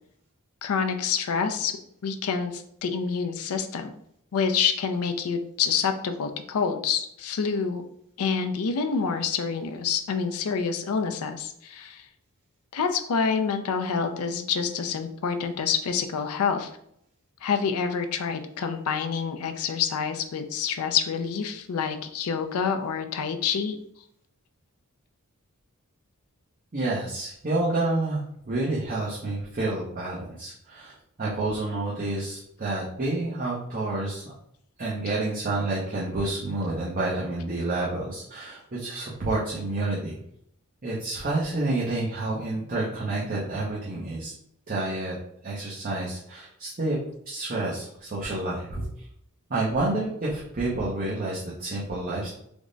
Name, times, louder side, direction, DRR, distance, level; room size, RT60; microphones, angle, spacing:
voice 1, 0.6-1.7 2.0-3.9 4.3-7.8 8.2-12.0 12.7-16.7 17.4-23.8, left 6 dB, 75° left, 7 dB, 0.4 m, -27 dB
voice 2, 26.7-34.3 34.8-40.2 40.8-44.3 44.7-45.2 45.4-47.0 47.3-49.1 49.5-52.3, right 2 dB, 40° right, -6 dB, 0.7 m, -29 dB
3.5 x 2.1 x 3.8 m, 0.72 s
head